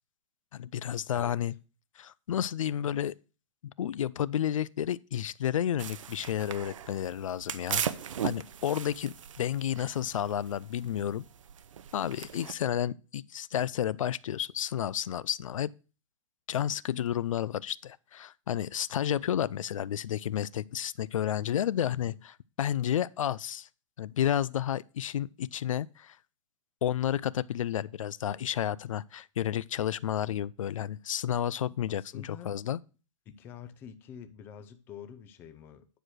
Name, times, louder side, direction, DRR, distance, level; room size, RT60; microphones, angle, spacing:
voice 1, 0.5-1.5 2.0-3.1 3.6-7.8 8.2-11.2 11.9-15.7 16.5-23.7 24.0-26.2 26.8-32.8, left 10 dB, 85° left, 0.5 m, -31 dB
sound 1, 5.8-12.5, right 9 dB, 75° right, 0.9 m, -38 dB
voice 2, 21.8-22.2 31.9-32.6 33.3-35.9, left 8 dB, 15° left, 0.5 m, -48 dB
9.9 x 4.8 x 6.3 m
hypercardioid pair, 170°, 16 cm